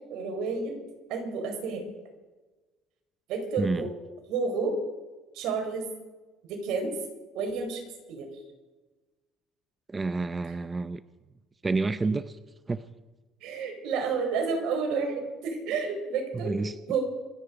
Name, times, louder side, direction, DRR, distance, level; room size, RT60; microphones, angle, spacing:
voice 1, 0.1-0.8 1.1-1.9 3.3-3.9 4.3-4.8 5.3-5.9 6.5-6.9 7.3-7.8 8.1-8.3 13.4-16.6 16.9-17.0, right 5 dB, 75° right, 3 dB, 4.7 m, -30 dB
voice 2, 3.6-3.9 9.9-11.0 11.6-12.4 12.7-12.8 16.3-16.8, right 3 dB, 20° right, 12 dB, 0.6 m, -29 dB
27.0 x 9.9 x 5.2 m, 1.2 s
cardioid pair, 110°, 0 cm